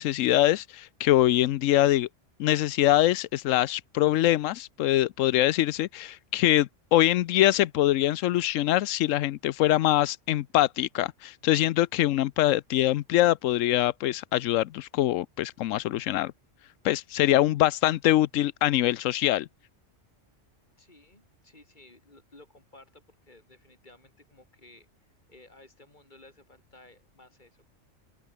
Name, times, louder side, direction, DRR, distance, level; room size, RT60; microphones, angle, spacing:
voice 1, 0.0-2.1 2.4-16.3 16.8-19.5, left 14 dB, 90° left, 1.0 m, -24 dB
voice 2, 20.8-24.9 25.3-27.7, left 2 dB, 35° left, 3.8 m, -55 dB
open air
omnidirectional pair, 1.3 m